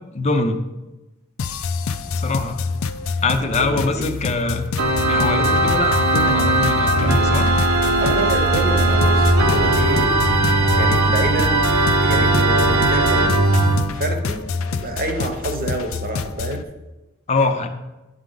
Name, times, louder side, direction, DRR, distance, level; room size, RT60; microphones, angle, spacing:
voice 1, 0.1-0.6 2.1-2.6 3.2-4.7 5.1-7.5 17.3-17.7, left 3 dB, 35° left, 6 dB, 0.5 m, -23 dB
sound 1, 1.4-16.6, left 5 dB, 90° left, 0.4 m, -27 dB
voice 2, 3.6-4.1 8.0-10.5 10.8-11.7 12.0-13.4 13.9-14.4 14.7-16.6, right 2 dB, 45° right, 4 dB, 1.0 m, -27 dB
Organ, 4.8-13.9, right 2 dB, 80° right, 0.9 m, -18 dB
10.5 x 4.7 x 3.9 m, 1.0 s
head